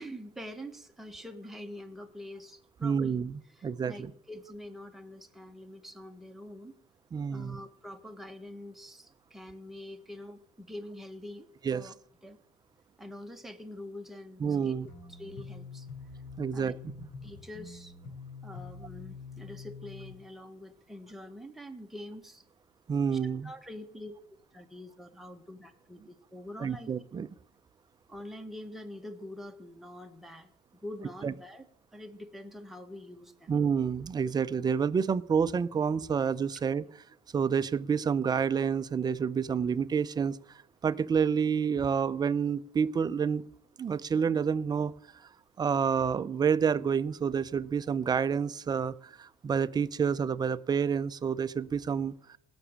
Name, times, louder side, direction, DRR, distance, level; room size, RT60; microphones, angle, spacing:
voice 1, 0.0-3.1 3.5-6.7 7.3-11.9 12.2-12.4 13.0-14.7 15.1-15.9 16.5-16.7 17.2-17.9 18.4-22.4 23.1-24.1 24.5-26.9 28.1-31.6 31.9-33.5, left 1 dB, ahead, 3 dB, 1.5 m, -45 dB
voice 2, 2.8-3.9 7.1-7.6 11.6-11.8 14.4-14.9 16.4-16.7 22.9-23.5 26.6-27.3 31.2-31.3 33.5-36.8 37.3-40.4 40.8-43.4 43.8-44.9 45.6-52.4, right 6 dB, 30° right, 15 dB, 0.6 m, -28 dB
sound 1, 14.9-20.2, left 4 dB, 60° left, 4.1 m, -45 dB
17.5 x 6.2 x 8.8 m, 0.72 s
supercardioid pair, 95°, 14 cm